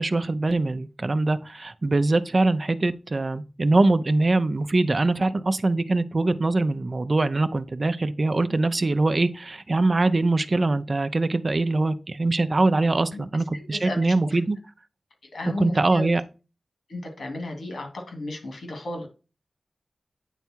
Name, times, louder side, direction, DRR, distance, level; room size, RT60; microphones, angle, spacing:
voice 1, 0.0-14.6 15.6-16.2, right 2 dB, 45° right, 0.6 m, -23 dB
voice 2, 13.5-14.1 15.3-16.1 16.9-19.1, left 2 dB, 80° left, 2.7 m, -34 dB
9.1 x 3.5 x 4.5 m
wide cardioid pair, 75°, 0 cm